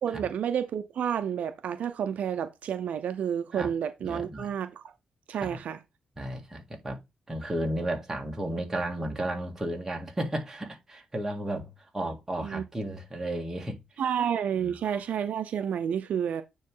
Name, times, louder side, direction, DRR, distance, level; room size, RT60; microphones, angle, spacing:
voice 1, 0.0-4.8 5.3-5.8 12.4-12.6 14.0-16.4, right 8 dB, 80° right, 0.6 m, -30 dB
voice 2, 4.0-4.5 5.3-5.6 6.2-7.0 7.3-13.8 14.6-14.7, right 1 dB, 15° right, 1.9 m, -33 dB
9.3 x 3.2 x 3.8 m
cardioid pair, 120°, 2 cm